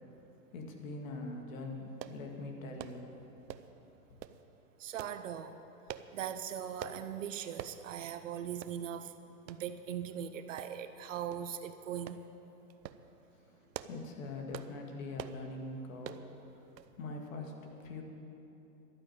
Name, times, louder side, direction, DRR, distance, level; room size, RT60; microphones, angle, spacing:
voice 1, 0.5-3.3 4.1-4.2 13.3-16.5 17.0-17.5 17.8-18.0, left 2 dB, 50° left, 2 dB, 2.2 m, -43 dB
sound 1, 2.0-2.2 2.8-3.0 3.5-3.8 4.2-4.4 5.0-5.2 5.9-6.1 6.8-7.0 7.6-7.8 8.2-8.3 8.6-8.8 9.5-9.6 10.6-11.0 11.3-11.5 12.1-12.2 12.7-13.0 13.5-14.0 14.5-14.7 15.2-15.4 16.0-16.3 16.8-16.9 17.2-17.3, right 11 dB, 85° right, 0.8 m, -45 dB
voice 2, 4.8-5.6 6.1-9.1 9.5-12.2, right 9 dB, 50° right, 10 dB, 0.7 m, -40 dB
12.0 x 9.0 x 8.9 m, 3.0 s
hypercardioid pair, 150°, 50 cm